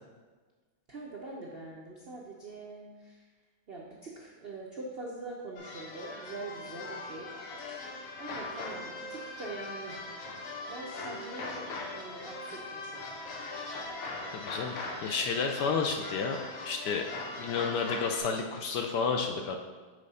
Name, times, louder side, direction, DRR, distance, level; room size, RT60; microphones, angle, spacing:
voice 1, 0.9-3.3 3.7-10.1 10.7-11.6 11.9-13.2 15.6-15.8, right 2 dB, 75° right, -3 dB, 0.5 m, -44 dB
sound 1, 5.6-18.2, left 2 dB, 90° left, 1.7 m, -40 dB
voice 2, 14.3-16.4 16.6-17.1 17.4-19.5, left 5 dB, 75° left, 4 dB, 1.0 m, -31 dB
6.4 x 3.7 x 5.4 m, 1.4 s
omnidirectional pair, 2.2 m